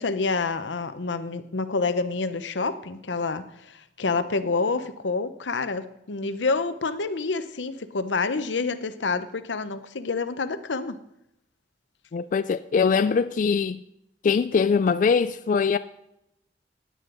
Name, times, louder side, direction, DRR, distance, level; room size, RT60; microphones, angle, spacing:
voice 1, 0.0-11.0, left 4 dB, 90° left, 0.8 m, -28 dB
voice 2, 12.1-13.8 14.2-15.8, left 5 dB, 45° left, 0.3 m, -22 dB
15.5 x 9.4 x 3.9 m
head